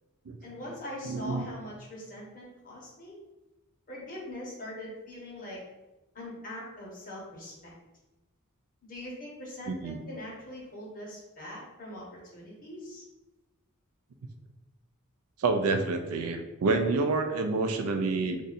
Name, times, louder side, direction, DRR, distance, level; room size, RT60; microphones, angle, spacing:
voice 1, 0.4-3.2 3.9-5.6 6.1-7.7 8.8-12.0 12.3-13.0, left 1 dB, 40° left, -5 dB, 1.2 m, -42 dB
voice 2, 1.0-1.5 9.7-10.0 15.4-18.4, right 3 dB, 75° right, 6 dB, 0.4 m, -28 dB
2.6 x 2.5 x 4.0 m, 1.0 s
head